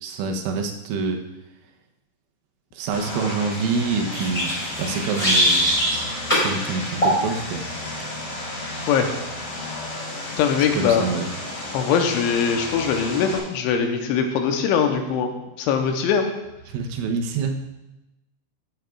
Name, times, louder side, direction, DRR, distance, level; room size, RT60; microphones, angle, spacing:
voice 1, 0.0-1.2 2.7-4.5 4.8-5.7 6.4-7.6 10.7-11.3 16.7-17.6, right 4 dB, 85° right, 3 dB, 3.4 m, -26 dB
Vehicle, 2.9-13.4, left 2 dB, 50° left, 3.4 m, -33 dB
sound 1, 4.1-6.0 6.3-6.5 7.0-7.2, equal, 10° left, 3.0 m, -21 dB
voice 2, 10.4-11.1 11.7-15.3 15.6-16.3, left 7 dB, 85° left, 4 dB, 3.1 m, -21 dB
14.0 x 8.0 x 2.3 m, 0.95 s
omnidirectional pair, 5.5 m